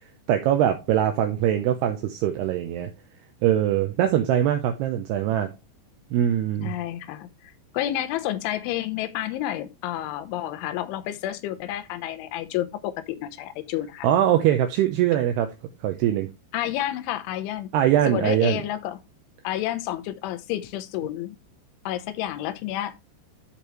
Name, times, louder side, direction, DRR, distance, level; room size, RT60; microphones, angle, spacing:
voice 1, 0.3-2.9 3.4-5.5 6.1-6.7 14.0-15.5 15.8-16.3 17.7-18.6, right 11 dB, 80° right, 2.6 m, -22 dB
voice 2, 6.6-14.1 16.5-17.7 18.1-19.0 19.4-21.4 21.9-22.9, left 13 dB, 85° left, 3.4 m, -30 dB
13.0 x 5.2 x 3.2 m
omnidirectional pair, 5.4 m